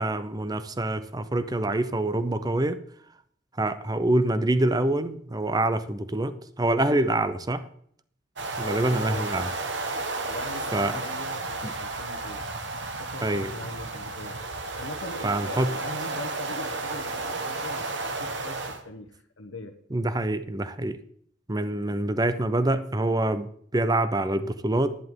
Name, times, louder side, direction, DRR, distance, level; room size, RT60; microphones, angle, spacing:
voice 1, 0.0-2.8 3.6-7.7 8.6-9.5 10.7-11.0 11.6-11.7 13.2-13.5 15.2-15.7 19.9-21.0 21.5-25.0, right 1 dB, 20° right, 12 dB, 0.6 m, -26 dB
sound 1, 8.4-18.8, right 3 dB, 60° right, 1.3 m, -33 dB
voice 2, 8.6-9.6 10.2-12.5 13.0-14.4 14.8-19.7 21.8-22.0, left 2 dB, 85° left, 4 dB, 0.9 m, -41 dB
11.0 x 10.5 x 3.7 m, 0.63 s
head